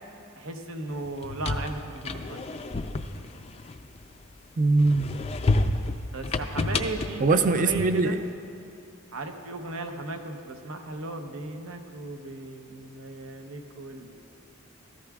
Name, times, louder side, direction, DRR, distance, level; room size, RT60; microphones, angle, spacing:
voice 1, 0.4-2.4 6.1-8.2 9.1-14.2, right 2 dB, 75° right, 5 dB, 0.8 m, -36 dB
sound 1, 1.0-4.3 4.8-8.2, left 2 dB, 25° left, 0.3 m, -30 dB
voice 2, 4.6-5.1 7.2-8.3, right 3 dB, 35° right, 9 dB, 0.4 m, -22 dB
14.5 x 14.0 x 2.4 m, 2.5 s
head